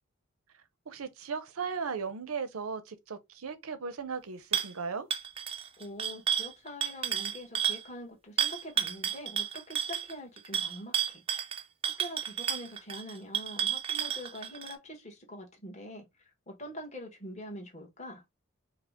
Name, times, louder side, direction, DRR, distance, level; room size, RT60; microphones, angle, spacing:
voice 1, 0.9-5.1, right 5 dB, 85° right, 0.6 m, -37 dB
sound 1, 4.5-4.7 5.1-7.8 8.4-14.7, right 9 dB, 25° right, 0.4 m, -31 dB
voice 2, 5.8-11.2 12.0-18.2, equal, 30° left, 1.2 m, -44 dB
4.7 x 2.1 x 3.6 m
head